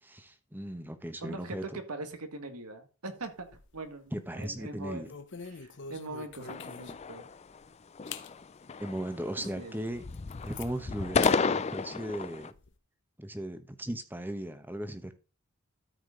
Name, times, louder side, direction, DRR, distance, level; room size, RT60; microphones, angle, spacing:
voice 1, 0.0-1.8 4.1-5.1 8.8-10.1 10.4-12.5 13.2-15.1, right 1 dB, 10° right, 1.0 m, -37 dB
voice 2, 1.2-1.6 1.9-3.5 3.7-5.0 5.4-7.3 9.6-9.7, right 2 dB, 85° right, 1.8 m, -42 dB
sound 1, 3.2-3.9 4.3-4.5 5.0-7.1 7.6-7.7 8.1-8.3 8.8-8.9 9.4-9.5 9.9-10.7 11.2-11.4 11.8-12.7, left 7 dB, 55° left, 0.8 m, -44 dB
sound 2, 6.4-7.6 8.0-8.4 8.7-9.7 9.9-12.5, left 5 dB, 30° left, 0.4 m, -32 dB
13.0 x 5.0 x 3.8 m
head